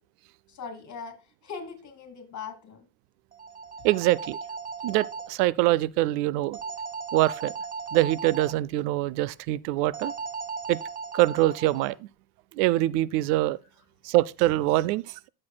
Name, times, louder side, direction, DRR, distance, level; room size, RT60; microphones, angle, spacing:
voice 1, 0.5-2.8, left 5 dB, 35° left, 2.6 m, -40 dB
sound 1, 3.3-5.3 6.5-8.5 9.9-11.9, right 5 dB, 20° right, 0.7 m, -37 dB
voice 2, 3.8-4.4 4.8-6.6 7.1-7.5 7.9-10.1 10.7-10.8 11.1-12.0 12.6-13.6 14.0-15.0, right 16 dB, 85° right, 0.6 m, -24 dB
14.5 x 6.5 x 2.2 m
supercardioid pair, 110°, 46 cm